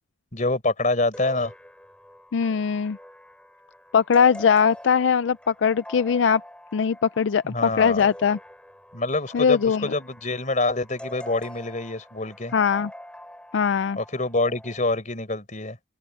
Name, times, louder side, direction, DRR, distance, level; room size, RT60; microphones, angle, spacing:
voice 1, 0.3-1.5 7.4-8.1 8.9-12.5 14.0-15.8, left 2 dB, 40° left, 4.6 m, -26 dB
sound 1, 1.1-14.9, left 1 dB, 5° left, 5.3 m, -45 dB
voice 2, 2.3-3.0 3.9-6.4 6.7-8.4 9.3-9.9 12.5-12.9 13.5-14.0, left 6 dB, 80° left, 0.4 m, -21 dB
open air
head